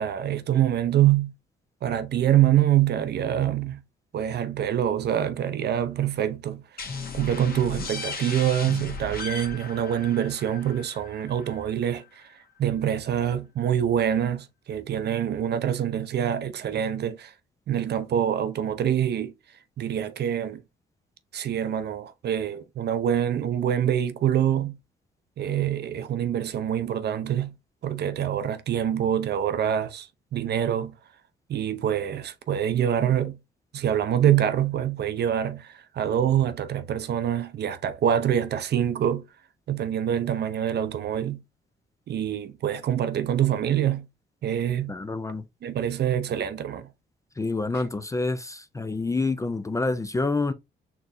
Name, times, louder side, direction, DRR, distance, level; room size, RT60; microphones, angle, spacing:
voice 1, 0.0-1.3 1.8-3.8 4.1-6.6 7.1-12.2 12.6-17.3 17.7-19.3 19.8-20.6 21.3-24.8 25.4-27.5 27.8-30.9 31.5-33.4 33.7-39.3 39.7-41.4 42.1-44.1 44.4-44.9 45.6-46.9, right 10 dB, 55° right, 0.6 m, -25 dB
sound 1, 6.8-12.2, left 4 dB, 50° left, 1.2 m, -37 dB
voice 2, 44.9-45.4 47.4-50.5, left 3 dB, 15° left, 0.4 m, -27 dB
4.4 x 3.0 x 2.6 m
cardioid pair, 90°, 20 cm